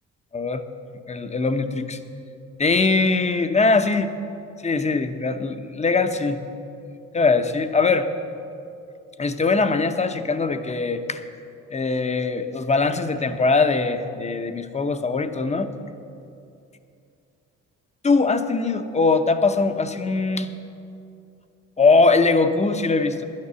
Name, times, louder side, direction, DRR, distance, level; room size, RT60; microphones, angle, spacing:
voice 1, 1.1-2.0 2.6-4.1 4.6-6.4 7.1-8.1 9.2-11.2 11.7-15.7 18.0-20.5 21.8-23.2, left 3 dB, 20° left, 9 dB, 0.7 m, -21 dB
10.5 x 9.7 x 6.8 m, 2.6 s
cardioid pair, 90°, 30 cm